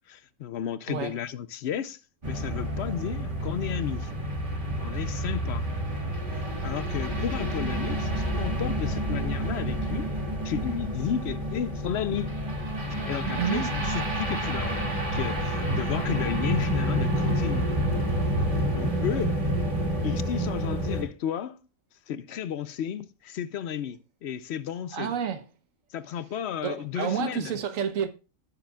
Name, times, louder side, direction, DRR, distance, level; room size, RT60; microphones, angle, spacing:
voice 1, 0.1-2.0 2.3-4.1 4.8-5.7 6.3-10.1 10.4-12.4 12.9-17.7 18.7-19.4 20.0-21.6 22.1-25.2 25.9-27.6, left 9 dB, 65° left, 0.7 m, -33 dB
sound 1, 2.2-21.0, equal, 35° right, 2.3 m, -29 dB
voice 2, 6.4-6.8 13.2-13.7 24.9-25.4 26.6-28.1, right 8 dB, 70° right, 1.3 m, -30 dB
16.5 x 6.9 x 2.3 m
omnidirectional pair, 1.4 m